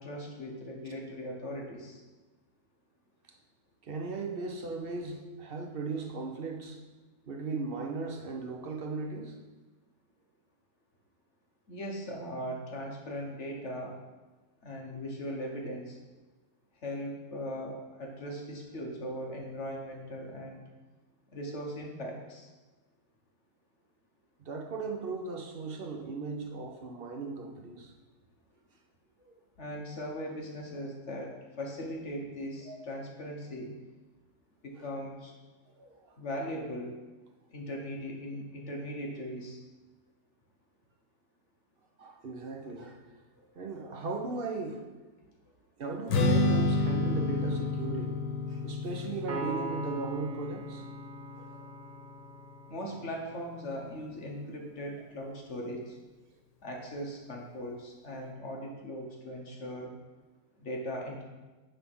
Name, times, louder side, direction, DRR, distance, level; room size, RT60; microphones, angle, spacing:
voice 1, 0.0-2.0 11.7-13.9 14.6-16.0 16.8-20.6 21.3-22.5 29.6-33.7 34.6-35.3 36.2-36.9 37.5-39.6 52.7-56.0 56.6-59.9 60.6-61.2, equal, 45° left, 0 dB, 1.2 m, -39 dB
voice 2, 3.8-6.8 7.3-9.4 24.4-27.9 29.2-29.3 32.6-32.8 34.8-34.9 35.7-36.1 42.0-44.8 45.8-48.1 48.5-50.8 51.4-51.6, right 4 dB, 50° right, 1 dB, 0.7 m, -37 dB
Strum, 46.1-52.4, left 2 dB, 80° left, 1.5 m, -30 dB
Piano, 49.3-52.9, right 3 dB, 80° right, 2.0 m, -40 dB
9.4 x 3.5 x 6.0 m, 1.2 s
omnidirectional pair, 1.9 m